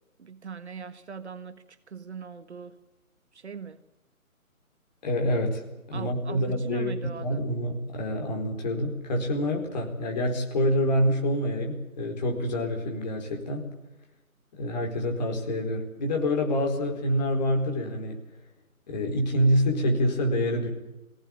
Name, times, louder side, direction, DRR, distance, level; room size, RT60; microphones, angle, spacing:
voice 1, 0.2-2.8 3.3-3.8 5.9-7.4, right 6 dB, 50° right, 11 dB, 1.6 m, -40 dB
voice 2, 5.0-5.6 5.9-6.9 7.2-13.7 14.5-18.2 18.9-20.7, equal, 30° left, 2 dB, 4.6 m, -26 dB
23.0 x 18.5 x 8.8 m, 0.98 s
figure-of-eight pair, 160°, 44 cm